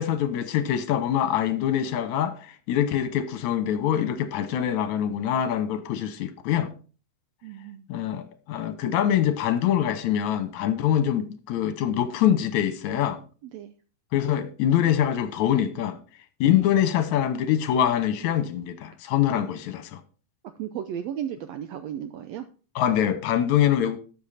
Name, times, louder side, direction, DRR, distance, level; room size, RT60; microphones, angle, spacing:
voice 1, 0.0-6.7 7.9-13.2 14.1-16.0 16.4-20.0 22.8-24.0, left 10 dB, 75° left, 2.2 m, -24 dB
voice 2, 7.4-7.9 13.4-13.7 19.3-19.4 20.6-22.5, right 10 dB, 80° right, 1.5 m, -34 dB
12.5 x 7.3 x 4.2 m
omnidirectional pair, 3.6 m